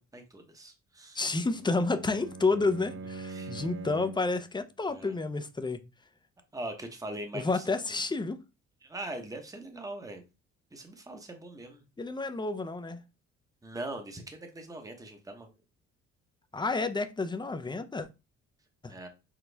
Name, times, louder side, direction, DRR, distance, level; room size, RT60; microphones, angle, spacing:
voice 1, 0.0-1.2 3.3-3.6 4.9-5.2 6.5-7.8 8.8-10.2 10.7-11.8 13.6-15.5 18.9-19.1, right 1 dB, 10° right, 0.9 m, -41 dB
voice 2, 1.1-5.8 7.3-8.4 12.0-13.0 16.5-18.1 18.8-18.9, left 3 dB, 15° left, 0.5 m, -30 dB
Bowed string instrument, 1.2-4.4, right 3 dB, 45° right, 0.5 m, -43 dB
6.1 x 2.3 x 3.4 m
cardioid pair, 90°, 30 cm